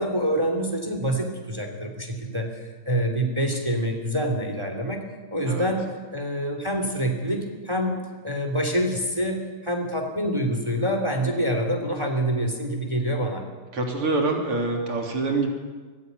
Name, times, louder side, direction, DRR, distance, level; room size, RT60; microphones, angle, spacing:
voice 1, 0.0-7.9 8.2-13.4, equal, 15° right, 4 dB, 2.9 m, -26 dB
voice 2, 13.7-15.5, right 3 dB, 90° right, 1 dB, 4.2 m, -25 dB
25.0 x 15.0 x 9.4 m, 1.4 s
omnidirectional pair, 2.4 m